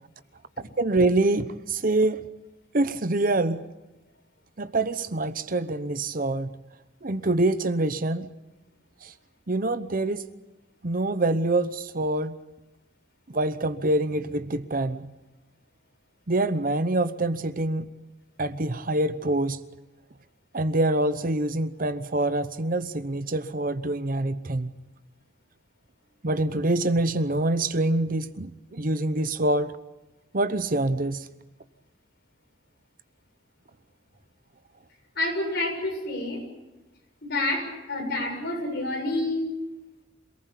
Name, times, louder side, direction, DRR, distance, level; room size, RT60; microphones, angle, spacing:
voice 1, 0.8-2.2 2.7-3.6 4.6-6.5 7.0-8.3 9.0-9.1 9.5-10.2 10.8-12.4 13.3-15.1 16.3-17.9 18.4-19.6 20.5-24.7 26.2-29.7 30.3-31.3, right 2 dB, 45° right, 12 dB, 0.9 m, -25 dB
voice 2, 35.2-36.4 37.2-39.5, left 2 dB, 55° left, 1 dB, 7.5 m, -28 dB
27.0 x 19.0 x 8.4 m, 1.0 s
head